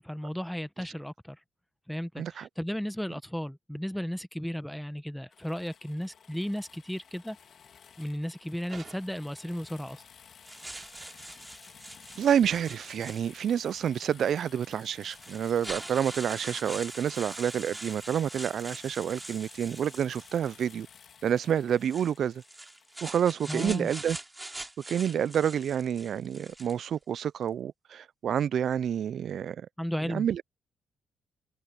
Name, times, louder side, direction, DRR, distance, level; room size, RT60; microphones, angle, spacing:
voice 1, 0.0-1.4 1.9-7.4 8.0-10.0 23.5-23.9 29.8-30.3, equal, ahead, 1.0 m, -34 dB
voice 2, 2.2-2.5 10.7-10.8 12.2-20.9 21.2-22.4 23.0-24.2 24.9-29.7 30.1-30.4, right 9 dB, 60° right, 0.3 m, -28 dB
sound 1, 5.3-23.0, left 7 dB, 55° left, 2.8 m, -54 dB
sound 2, 8.7-9.3 11.4-11.8 12.5-13.0, right 5 dB, 45° right, 3.6 m, -49 dB
sound 3, 10.5-13.6 14.5-14.6 15.0-20.8 21.7-26.9, right 2 dB, 15° right, 2.7 m, -43 dB
cardioid pair, 90°, 0 cm